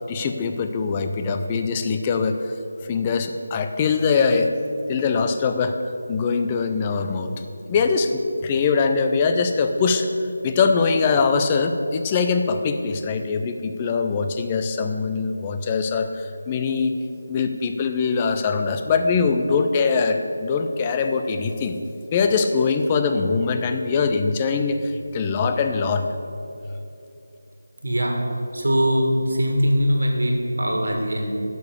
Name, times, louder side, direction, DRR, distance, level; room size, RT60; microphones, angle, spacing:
voice 1, 0.1-2.4 2.9-4.5 4.9-5.8 6.1-7.3 7.7-10.1 10.4-16.9 17.3-21.8 22.1-26.1, left 5 dB, 20° left, 7 dB, 0.6 m, -22 dB
voice 2, 27.8-28.2 28.5-31.4, equal, 65° right, 2 dB, 1.8 m, -21 dB
10.5 x 6.8 x 6.9 m, 2.7 s
figure-of-eight pair, 160°, 0 cm